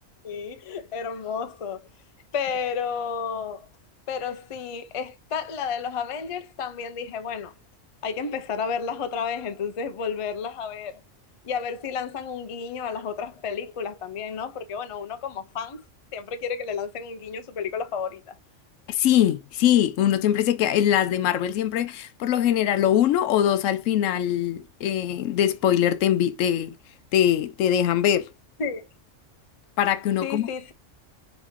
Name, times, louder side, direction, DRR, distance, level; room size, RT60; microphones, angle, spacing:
voice 1, 0.2-1.9 2.3-3.7 4.1-7.5 8.0-11.0 11.4-15.8 16.1-18.3 28.6-28.9 30.2-30.7, left 6 dB, 45° left, 0.4 m, -31 dB
voice 2, 18.9-26.7 27.1-28.3 29.8-30.5, left 10 dB, 85° left, 0.9 m, -22 dB
4.0 x 2.9 x 3.6 m
omnidirectional pair, 1.3 m